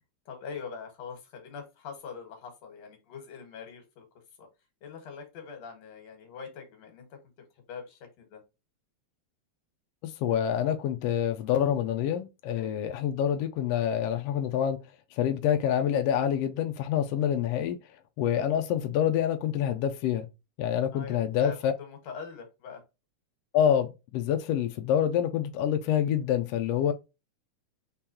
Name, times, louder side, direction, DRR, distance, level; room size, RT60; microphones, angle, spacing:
voice 1, 0.3-4.0 4.4-4.5 4.8-7.1 7.4-8.4 12.6-12.9 20.9-22.8, left 6 dB, 65° left, 2.6 m, -43 dB
voice 2, 10.0-14.8 15.1-17.8 18.2-20.3 20.6-21.7 23.5-26.9, left 9 dB, 80° left, 1.4 m, -27 dB
5.1 x 3.8 x 2.8 m
omnidirectional pair, 3.5 m